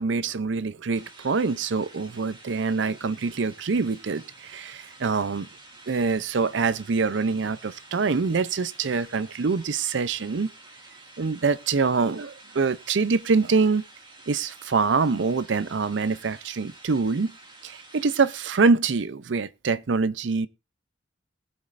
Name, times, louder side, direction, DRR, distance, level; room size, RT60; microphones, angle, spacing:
voice 1, 0.0-5.5 5.9-10.5 11.2-13.8 14.3-17.3 17.6-20.5, right 4 dB, 65° right, 0.5 m, -25 dB
sound 1, 0.9-18.6, right 2 dB, 25° right, 2.1 m, -50 dB
20.5 x 8.1 x 2.5 m
head